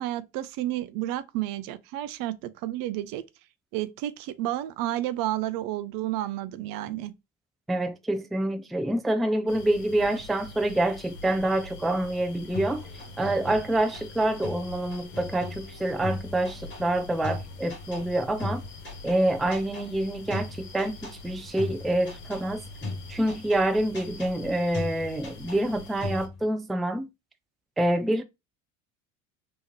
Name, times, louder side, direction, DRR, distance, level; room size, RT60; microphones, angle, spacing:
voice 1, 0.0-3.2 3.7-7.1, right 14 dB, 55° right, 0.6 m, -31 dB
voice 2, 7.7-12.9 13.2-18.6 19.0-22.6 23.1-27.1 27.8-28.2, right 1 dB, ahead, 0.4 m, -27 dB
sound 1, 9.5-26.3, left 3 dB, 60° left, 1.5 m, -45 dB
sound 2, 12.5-18.1 18.4-19.2 19.5-19.9 20.3-21.2 21.6-22.4 22.8-23.6 23.9-24.3 24.7-25.7 26.0-26.4, left 2 dB, 30° left, 2.1 m, -37 dB
3.4 x 3.1 x 2.9 m
hypercardioid pair, 70°, 41 cm